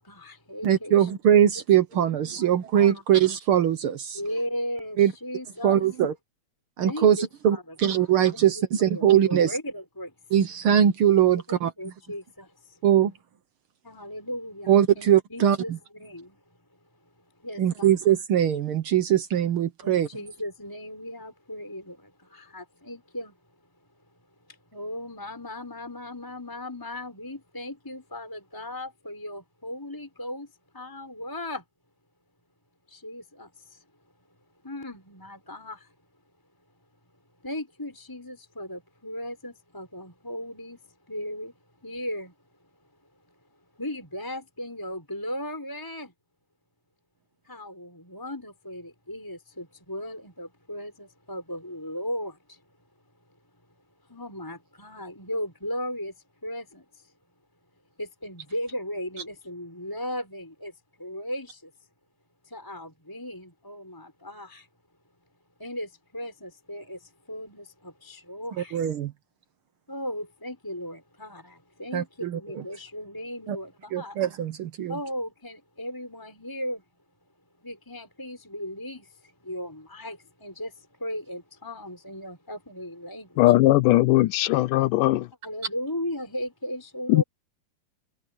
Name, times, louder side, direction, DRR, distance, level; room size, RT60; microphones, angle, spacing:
voice 1, 0.0-1.1 1.9-2.5 2.8-2.9 4.1-5.9 6.8-7.2 7.5-8.6 8.9-10.1 11.5-12.8 13.8-16.4 17.4-17.9 19.8-23.4 24.5-30.5 30.7-31.6 32.9-33.8 34.6-35.9 37.4-42.3 43.8-46.1 47.5-52.6 54.1-56.1 56.4-57.1 58.0-61.7 62.4-64.7 65.6-68.8 69.9-74.2 74.9-76.8 77.6-83.4 85.4-87.2, left 1 dB, 5° left, 6.3 m, -37 dB
voice 2, 0.6-4.2 5.0-5.1 5.6-6.1 6.8-9.5 10.3-11.7 12.8-13.1 14.7-15.8 17.6-20.1 68.6-69.1 71.9-72.6 73.5-73.6 73.9-75.0, right 10 dB, 75° right, 1.2 m, -21 dB
voice 3, 83.4-85.3 87.1-87.2, left 17 dB, 80° left, 2.3 m, -19 dB
omnidirectional pair, 3.8 m